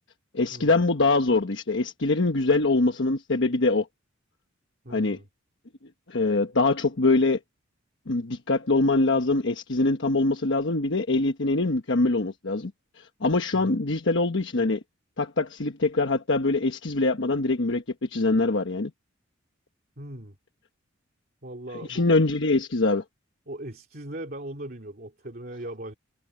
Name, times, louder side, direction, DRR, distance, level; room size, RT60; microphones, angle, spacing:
voice 1, 0.3-3.9 4.9-5.2 6.1-7.4 8.1-12.7 13.0-14.8 15.2-17.8 18.1-18.9 21.9-23.0, left 3 dB, 65° left, 1.2 m, -23 dB
voice 2, 4.8-5.3 13.5-13.8 20.0-20.4 21.4-22.1 23.5-25.9, right 1 dB, 50° right, 2.8 m, -39 dB
head